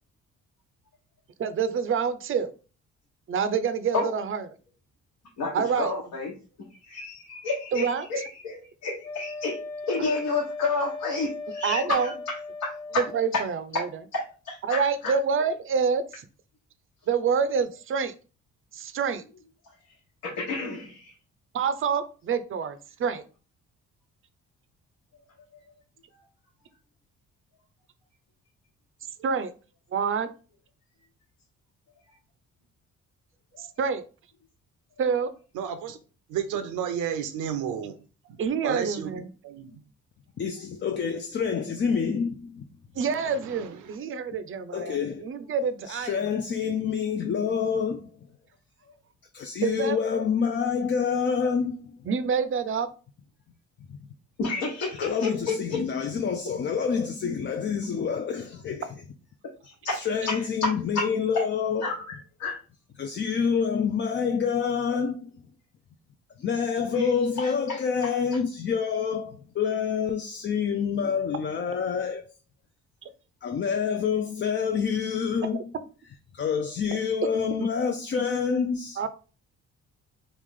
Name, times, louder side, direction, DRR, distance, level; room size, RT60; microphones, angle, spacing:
voice 1, 1.4-2.5 3.3-4.4 5.5-5.9 7.7-8.1 11.6-12.1 13.1-13.9 14.6-16.2 17.1-18.1 18.7-19.2 21.5-23.2 29.2-29.5 29.9-30.3 33.6-34.0 35.0-35.3 38.4-39.3 43.0-46.2 49.6-50.0 52.1-52.9 79.0-79.1, right 6 dB, 45° right, 0.5 m, -27 dB
voice 2, 5.4-6.3 6.8-9.6 9.9-13.0 13.3-13.4 13.7-13.8 14.1-15.1 20.2-21.1 54.4-55.8 59.6-61.1 61.8-62.1 62.4-62.6 67.0-67.1 67.4-67.8, left 3 dB, 70° left, 1.1 m, -30 dB
Wind instrument woodwind instrument, 9.0-13.3, left 3 dB, 90° left, 0.8 m, -37 dB
voice 3, 35.5-36.0 36.3-38.0 38.3-38.4 38.6-39.8 43.0-44.0, right 8 dB, 85° right, 0.7 m, -33 dB
voice 4, 40.4-42.6 44.7-45.3 45.9-48.1 49.3-52.1 53.9-54.1 55.0-58.9 59.9-62.0 63.0-65.5 66.4-72.2 73.4-75.6 76.3-79.0, left 6 dB, 40° left, 0.4 m, -27 dB
3.2 x 2.4 x 3.6 m
cardioid pair, 90°, 30 cm